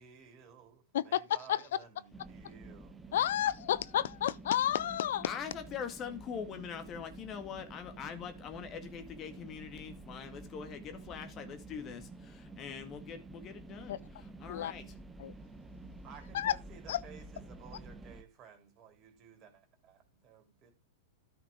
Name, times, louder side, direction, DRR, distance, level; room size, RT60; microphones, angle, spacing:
voice 1, 0.0-3.1 16.0-20.7, right 7 dB, 35° right, 3.3 m, -55 dB
sound 1, 2.1-18.2, right 3 dB, 10° right, 1.0 m, -50 dB
voice 2, 3.1-5.3 13.9-14.0 14.5-14.7 15.2-15.3 16.3-16.5 16.9-17.0, left 11 dB, 65° left, 0.4 m, -30 dB
voice 3, 5.2-14.9, left 7 dB, 35° left, 1.9 m, -43 dB
13.0 x 5.9 x 3.7 m
hypercardioid pair, 110°, 0 cm